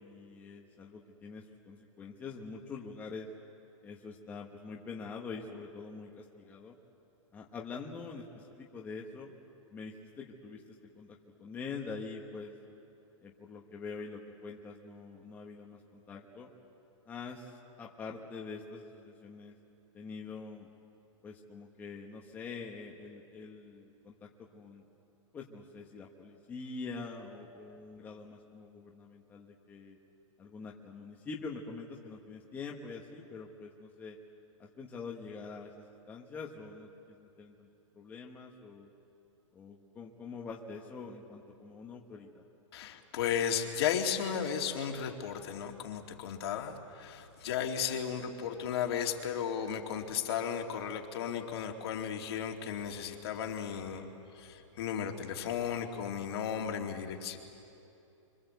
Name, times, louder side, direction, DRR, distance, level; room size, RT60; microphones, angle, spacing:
voice 1, 0.0-3.3 3.8-6.8 7.3-9.3 9.7-12.5 13.2-16.5 17.1-19.6 19.9-20.7 21.2-24.8 25.3-30.0 30.4-34.2 34.6-36.9 37.2-37.7 37.9-38.9 39.5-42.4, left 4 dB, 10° left, -1 dB, 1.2 m, -45 dB
voice 2, 42.7-54.1 54.3-57.4, left 8 dB, 50° left, 3 dB, 2.6 m, -35 dB
28.5 x 25.5 x 8.1 m, 2.8 s
hypercardioid pair, 170°, 17 cm